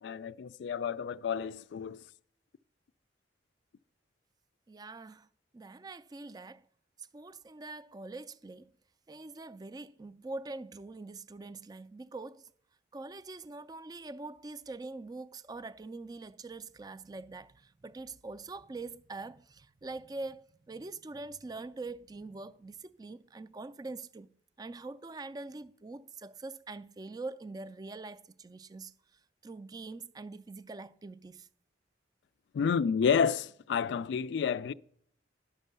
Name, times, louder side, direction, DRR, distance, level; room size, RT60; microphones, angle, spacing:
voice 1, 0.0-2.0 32.5-34.7, left 6 dB, 70° left, 0.3 m, -30 dB
voice 2, 4.7-5.3 5.5-6.6 7.1-8.7 9.1-12.4 12.9-24.3 24.6-28.9 29.4-31.5, right 3 dB, 20° right, 0.3 m, -44 dB
11.0 x 5.4 x 6.7 m
head